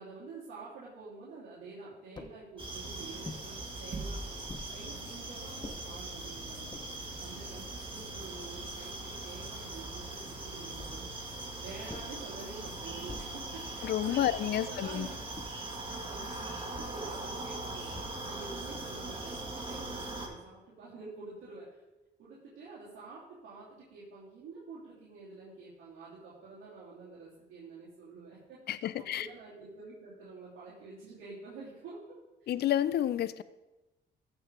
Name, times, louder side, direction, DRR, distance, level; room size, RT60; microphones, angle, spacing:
voice 1, 0.0-11.0 11.6-15.2 15.8-21.8 22.2-32.5, right 3 dB, 85° right, -9 dB, 2.9 m, -48 dB
sound 1, 2.2-2.4 3.2-3.5 4.5-4.7 5.6-5.8 6.5-6.9 7.6-7.7 7.9-9.0 10.8-11.1 11.9-12.2 13.1-13.4 14.2-14.6 15.4-15.7 16.7-17.0 17.9-18.4, left 2 dB, 20° left, 1.0 m, -47 dB
sound 2, 2.6-20.3, right 2 dB, 25° right, 2.2 m, -41 dB
sound 3, 3.9-4.9, right 3 dB, 50° right, 1.4 m, -40 dB
voice 2, 13.8-15.1 28.7-29.3 32.5-33.4, left 11 dB, 55° left, 16 dB, 0.4 m, -30 dB
14.5 x 5.8 x 3.7 m, 1.0 s
cardioid pair, 90°, 20 cm